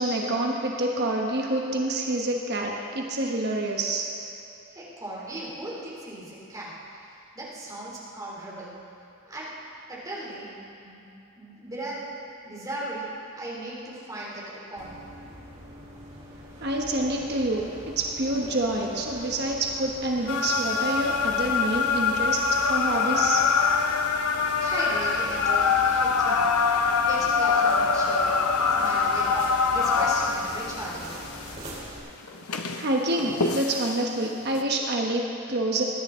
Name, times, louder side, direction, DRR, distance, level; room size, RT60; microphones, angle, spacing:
voice 1, 0.0-4.1 16.6-22.4 22.7-23.4 32.8-35.8, right 1 dB, 50° right, 0 dB, 1.2 m, -27 dB
voice 2, 4.7-6.7 7.3-8.7 9.2-9.5 9.9-11.0 11.4-12.1 12.4-15.0 24.3-26.5 27.0-31.2, right 1 dB, 15° right, -6 dB, 3.0 m, -37 dB
sound 1, 14.8-32.0, equal, 30° right, 3.1 m, -43 dB
sound 2, 20.3-31.6 32.3-34.0 34.6-34.7, left 5 dB, 90° left, 0.9 m, -24 dB
20.5 x 10.5 x 3.8 m, 2.8 s
head